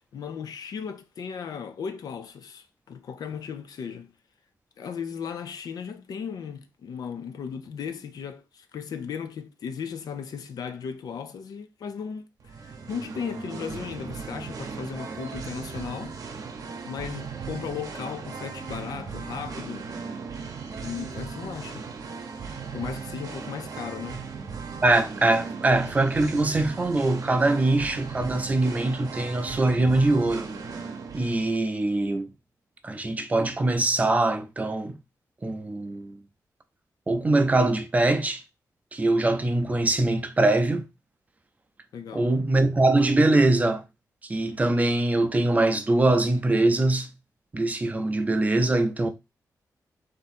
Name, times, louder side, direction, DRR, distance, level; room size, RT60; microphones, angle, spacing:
voice 1, 0.1-4.1 4.8-12.3 12.6-16.2 16.8-19.9 20.8-21.9 22.7-24.3 41.9-42.3, left 7 dB, 75° left, 0.5 m, -36 dB
Singing, 12.4-31.6, right 5 dB, 60° right, 0.7 m, -37 dB
voice 2, 24.8-30.5 31.1-32.3 32.8-35.0 35.4-36.1 37.1-38.4 38.9-40.9 42.1-43.8 44.3-47.1 47.5-49.1, right 2 dB, 25° right, 0.5 m, -23 dB
3.6 x 2.7 x 4.2 m
wide cardioid pair, 140°, 7 cm